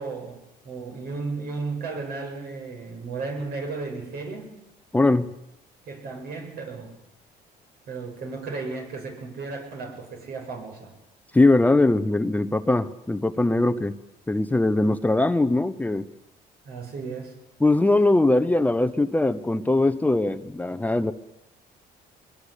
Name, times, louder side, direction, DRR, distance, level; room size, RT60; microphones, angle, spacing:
voice 1, 0.0-4.5 5.9-6.9 7.9-10.9 16.6-17.4, right 4 dB, 65° right, 3 dB, 7.2 m, -34 dB
voice 2, 4.9-5.3 11.3-14.0 14.3-16.1 17.6-21.1, left 2 dB, 10° left, 11 dB, 0.9 m, -21 dB
22.5 x 21.5 x 8.4 m, 0.89 s
cardioid pair, 110°, 17 cm